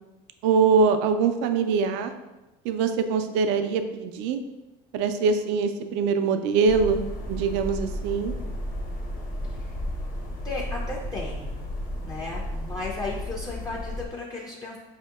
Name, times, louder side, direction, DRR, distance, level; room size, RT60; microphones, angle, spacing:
voice 1, 0.4-2.1 2.6-4.4 4.9-7.0 7.3-8.3, right 5 dB, 70° right, 8 dB, 0.4 m, -23 dB
sound 1, 6.7-14.1, left 1 dB, 45° left, 0.9 m, -33 dB
voice 2, 10.4-11.5 12.0-14.8, left 2 dB, 20° left, -3 dB, 0.5 m, -35 dB
5.0 x 2.8 x 2.3 m, 1.0 s
supercardioid pair, 105°, 20 cm